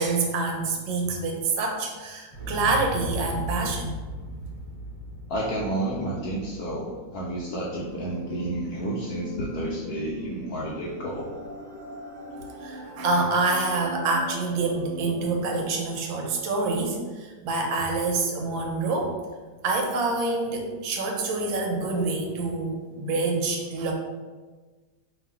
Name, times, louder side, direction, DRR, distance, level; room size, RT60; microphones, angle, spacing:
voice 1, 0.0-3.9 12.6-19.1 19.6-23.9, right 3 dB, 85° right, 2 dB, 1.4 m, -26 dB
Explosion, 2.3-8.4 8.7-8.8, right 1 dB, 30° left, 0.9 m, -37 dB
voice 2, 5.3-11.3, right 1 dB, 70° left, -4 dB, 0.9 m, -31 dB
sound 1, 7.7-15.7, equal, 55° right, 1.4 m, -40 dB
3.0 x 2.7 x 4.4 m, 1.3 s
omnidirectional pair, 2.1 m